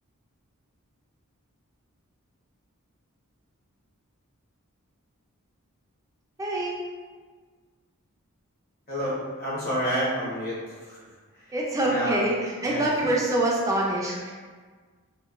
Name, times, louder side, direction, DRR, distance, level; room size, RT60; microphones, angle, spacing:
voice 1, 6.4-6.8 11.5-14.3, right 1 dB, 15° right, -3 dB, 0.3 m, -25 dB
voice 2, 8.9-11.0 11.4-11.5 11.9-12.2 12.7-13.1, equal, 45° left, -7 dB, 0.9 m, -30 dB
2.8 x 2.1 x 2.3 m, 1.5 s
head